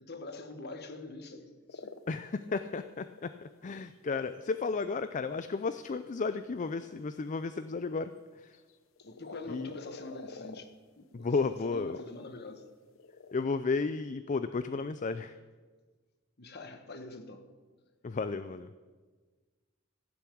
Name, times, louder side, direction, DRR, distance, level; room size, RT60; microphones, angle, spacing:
voice 1, 0.0-2.0 9.0-11.3 11.6-12.7 16.4-17.5, left 2 dB, 55° left, 1.3 m, -45 dB
sound 1, 1.7-3.4 4.2-4.9 5.3-7.3 8.3-10.8 11.2-12.6 12.9-13.5, left 4 dB, 75° left, 0.8 m, -49 dB
voice 2, 2.1-8.1 9.5-9.7 11.1-12.0 13.3-15.3 18.0-18.7, left 4 dB, 35° left, 0.4 m, -33 dB
16.0 x 7.2 x 8.4 m
head